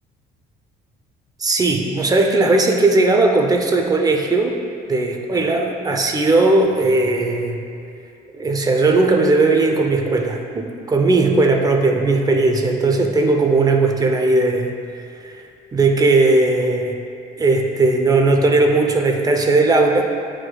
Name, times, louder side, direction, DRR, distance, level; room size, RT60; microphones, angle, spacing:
voice 1, 1.4-4.5 4.9-7.6 8.3-14.7 15.2-15.3 15.7-16.9 17.4-20.0, right 3 dB, 20° right, 3 dB, 0.6 m, -17 dB
9.2 x 4.9 x 2.3 m, 2.5 s
cardioid pair, 110°, 17 cm